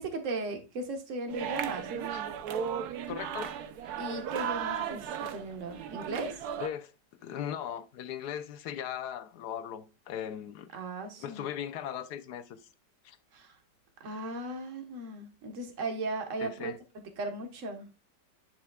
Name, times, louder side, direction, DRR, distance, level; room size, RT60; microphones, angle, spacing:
voice 1, 0.0-2.1 4.0-6.4 10.7-11.4 13.3-13.6 14.0-17.9, right 2 dB, 50° right, 1.5 m, -37 dB
sound 1, 1.3-6.7, right 8 dB, 70° right, 1.2 m, -35 dB
voice 2, 3.1-3.6 3.8-3.9 6.6-6.9 7.2-10.7 11.2-12.6 13.0-13.2 16.4-16.8, left 9 dB, 70° left, 1.2 m, -38 dB
9.7 x 5.8 x 2.3 m
omnidirectional pair, 1.8 m